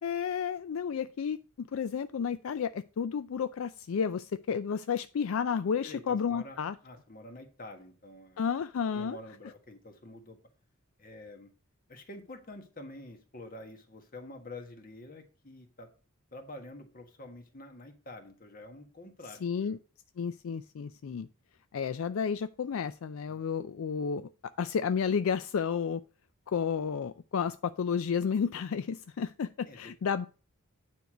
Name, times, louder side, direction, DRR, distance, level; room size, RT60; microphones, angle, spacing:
voice 1, 0.0-6.7 8.4-9.2 19.4-19.8 20.2-21.3 21.7-24.3 24.6-26.0 26.5-30.3, left 6 dB, 70° left, 12 dB, 0.4 m, -31 dB
voice 2, 5.8-8.4 8.9-10.4 11.0-11.5 11.9-15.9 16.3-19.8 23.2-23.5 29.6-29.9, left 1 dB, 40° left, 6 dB, 1.4 m, -47 dB
9.4 x 4.6 x 4.9 m, 0.37 s
head